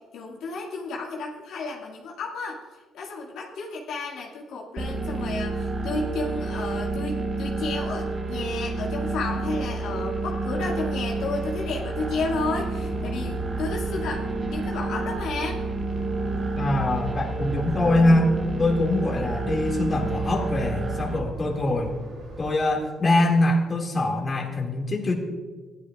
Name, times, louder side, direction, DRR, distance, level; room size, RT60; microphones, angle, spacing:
voice 1, 0.1-2.6 2.9-15.6, left 3 dB, 80° left, -2 dB, 2.0 m, -32 dB
sound 1, 4.8-21.2, right 3 dB, 35° right, 1.2 m, -29 dB
sound 2, 12.0-22.5, right 2 dB, 75° right, 2.8 m, -41 dB
voice 2, 16.6-21.9 22.4-25.1, left 2 dB, 30° left, 0 dB, 2.1 m, -23 dB
16.0 x 11.5 x 2.4 m, 1.5 s
cardioid pair, 90°, 0 cm